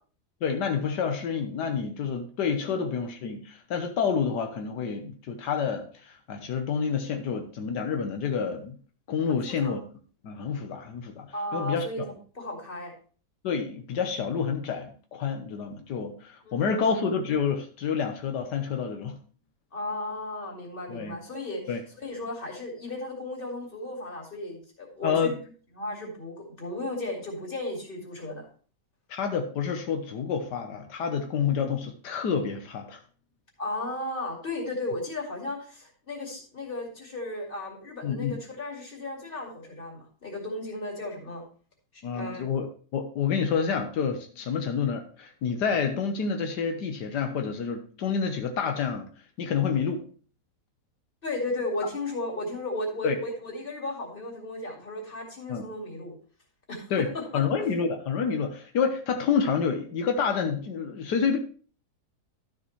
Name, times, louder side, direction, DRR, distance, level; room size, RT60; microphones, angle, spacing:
voice 1, 0.4-8.8 9.1-9.8 10.2-12.1 13.4-19.2 20.9-21.2 21.7-21.8 25.0-25.3 29.1-33.0 38.0-38.4 42.0-42.7 42.9-49.1 49.4-50.0 53.0-53.2 55.5-55.6 56.9-57.1 57.3-61.4, left 6 dB, 85° left, 5 dB, 1.6 m, -28 dB
voice 2, 9.3-9.8 11.3-12.0 12.3-12.9 16.4-16.9 19.7-21.6 22.0-25.3 25.8-28.5 33.6-41.4 41.9-42.4 51.2-56.2 56.7-56.8 57.1-57.3, left 2 dB, 30° left, 0 dB, 2.6 m, -35 dB
12.0 x 6.8 x 3.1 m, 0.41 s
omnidirectional pair, 1.7 m